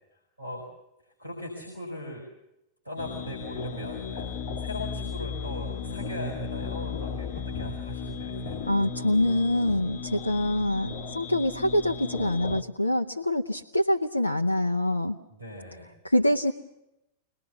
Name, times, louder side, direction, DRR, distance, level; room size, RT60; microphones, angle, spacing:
voice 1, 0.1-0.6 1.0-2.3 2.8-8.6 15.3-15.9, left 1 dB, 85° right, 0 dB, 5.1 m, -39 dB
sound 1, 3.0-12.6, left 5 dB, 50° left, 1.4 m, -35 dB
voice 2, 8.7-15.2 16.0-16.5, left 1 dB, 85° left, 4 dB, 0.9 m, -25 dB
24.5 x 20.0 x 7.0 m, 0.89 s
figure-of-eight pair, 90°, 0 cm